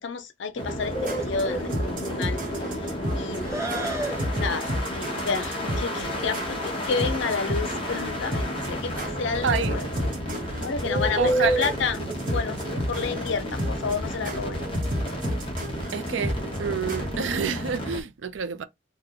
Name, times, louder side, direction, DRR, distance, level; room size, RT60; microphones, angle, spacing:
voice 1, 0.0-2.4 3.1-3.9 4.4-10.1 10.6-12.0 12.3-14.6, left 5 dB, 65° left, 0.5 m, -31 dB
sound 1, 0.5-18.0, equal, 25° left, 0.9 m, -32 dB
sound 2, 0.8-17.4, equal, 40° right, 0.8 m, -33 dB
Bird, 0.9-13.9, equal, 15° right, 0.6 m, -32 dB
voice 2, 9.4-9.8 11.2-11.7 15.9-16.3 16.6-18.6, right 6 dB, 65° right, 0.4 m, -28 dB
2.9 x 2.1 x 3.7 m
head